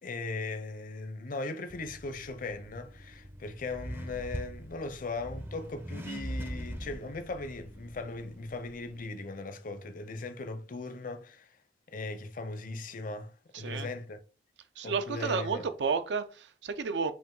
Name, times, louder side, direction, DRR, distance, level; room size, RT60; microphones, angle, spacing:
voice 1, 0.0-11.6 11.9-14.2 14.8-15.6, left 3 dB, 50° left, 0.6 m, -38 dB
Accelerating revving vroom, 1.7-9.0, equal, 10° right, 0.5 m, -42 dB
voice 2, 13.5-13.9 14.8-17.1, right 5 dB, 75° right, 0.5 m, -32 dB
5.5 x 2.5 x 3.7 m
head